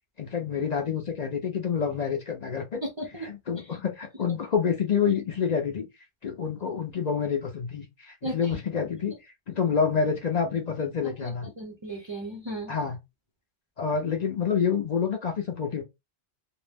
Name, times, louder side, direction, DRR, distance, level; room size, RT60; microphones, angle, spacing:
voice 1, 0.2-2.8 3.2-5.9 6.2-11.5 12.7-13.0 13.8-15.8, left 6 dB, 50° left, 0.6 m, -28 dB
voice 2, 2.8-3.3 3.6-3.8 8.2-8.6 11.0-12.7, right 1 dB, 35° right, 0.5 m, -36 dB
2.6 x 2.0 x 3.3 m
omnidirectional pair, 1.1 m